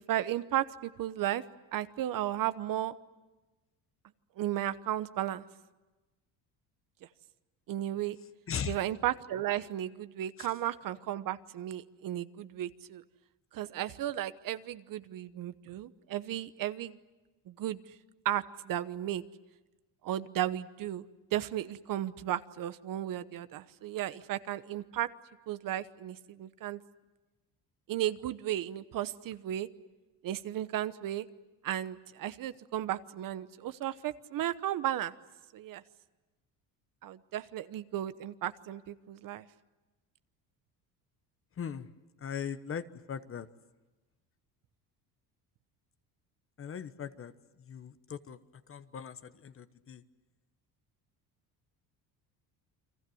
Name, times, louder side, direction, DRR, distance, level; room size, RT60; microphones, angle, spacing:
voice 1, 0.1-1.4 1.7-2.9 4.4-5.4 7.7-8.2 8.7-13.0 13.5-17.0 17.5-17.8 18.2-19.2 20.0-21.0 21.3-25.1 25.5-26.8 27.9-29.7 30.2-31.2 31.6-35.1 35.5-35.8 37.0-39.4, right 12 dB, 60° right, 13 dB, 1.1 m, -34 dB
voice 2, 41.6-41.9 42.2-43.5 46.6-47.3 47.6-48.4 48.7-50.0, left 7 dB, 35° left, 12 dB, 1.1 m, -39 dB
29.5 x 23.0 x 7.9 m, 1.1 s
cardioid pair, 115°, 38 cm